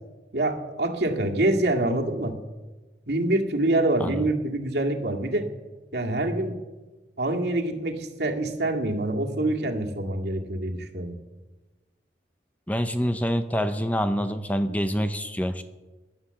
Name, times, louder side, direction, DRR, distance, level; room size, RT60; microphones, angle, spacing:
voice 1, 0.3-2.4 3.1-5.5 5.9-6.6 7.2-11.1, right 1 dB, 75° right, 2 dB, 2.1 m, -25 dB
voice 2, 12.7-15.6, equal, 10° left, 9 dB, 0.7 m, -26 dB
17.0 x 11.5 x 7.0 m, 1.2 s
head